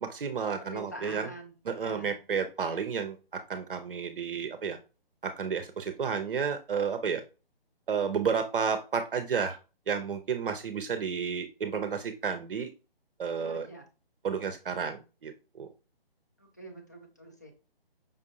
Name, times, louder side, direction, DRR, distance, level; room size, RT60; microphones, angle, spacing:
voice 1, 0.0-1.3 1.7-4.8 5.2-7.2 7.9-9.6 9.9-12.7 13.2-13.7 14.2-15.7, right 6 dB, 60° right, 7 dB, 0.6 m, -31 dB
voice 2, 0.6-2.2 13.3-13.8 16.4-17.5, right 1 dB, 20° left, 3 dB, 0.4 m, -45 dB
5.3 x 2.5 x 2.7 m, 0.32 s
figure-of-eight pair, 150°, 30 cm